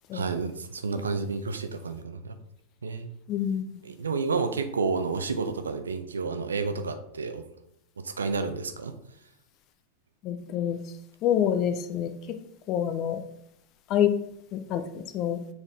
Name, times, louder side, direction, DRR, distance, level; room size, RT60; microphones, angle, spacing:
voice 1, 0.1-2.4 2.8-3.1 3.8-7.5 8.0-8.9, right 4 dB, 70° right, 8 dB, 0.6 m, -30 dB
voice 2, 3.3-3.7 10.2-10.8 11.2-12.4 12.7-13.2 13.9-14.1 14.5-15.4, left 10 dB, 35° left, 8 dB, 0.6 m, -27 dB
7.1 x 4.1 x 3.4 m, 0.76 s
figure-of-eight pair, 90°, 0 cm